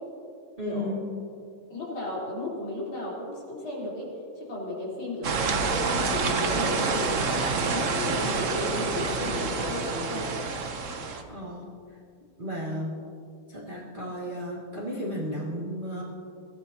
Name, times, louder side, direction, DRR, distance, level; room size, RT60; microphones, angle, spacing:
voice 1, 0.6-1.0 11.3-11.6 12.4-12.9 13.5-16.0, equal, 20° right, -7 dB, 2.6 m, -33 dB
voice 2, 1.7-4.1 4.4-5.3 5.6-10.3, left 2 dB, 65° left, -6 dB, 4.8 m, -34 dB
sound 1, 5.2-11.2, right 4 dB, 50° right, 1.0 m, -28 dB
22.0 x 16.0 x 2.9 m, 2.4 s
omnidirectional pair, 2.3 m